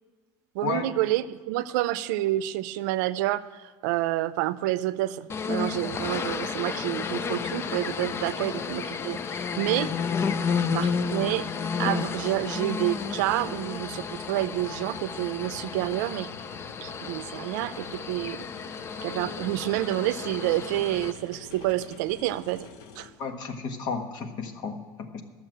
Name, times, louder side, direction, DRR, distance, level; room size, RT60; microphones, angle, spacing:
voice 1, 0.5-9.9 10.7-11.5 11.8-16.3 16.8-18.4 19.0-22.7 23.0-23.1, right 15 dB, 90° right, 16 dB, 0.5 m, -28 dB
sound 1, 5.3-21.1, left 6 dB, 25° left, 0.5 m, -32 dB
sound 2, 6.9-23.1, left 5 dB, 75° left, 1.3 m, -48 dB
voice 2, 23.2-25.2, left 5 dB, 50° left, 5 dB, 1.5 m, -33 dB
12.5 x 7.1 x 7.6 m, 1.4 s
cardioid pair, 135°, 10 cm